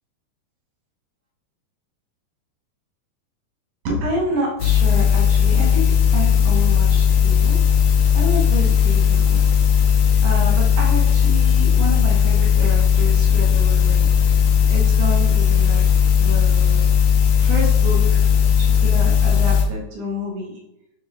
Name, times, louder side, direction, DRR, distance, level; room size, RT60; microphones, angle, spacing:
voice 1, 3.8-9.5 9.7-9.9 10.2-16.8 17.4-18.3 18.6-20.6, equal, 85° right, -2 dB, 1.4 m, -29 dB
sound 1, 4.6-19.6, left 8 dB, 90° left, 1.5 m, -16 dB
9.0 x 3.3 x 3.4 m, 0.86 s
omnidirectional pair, 4.3 m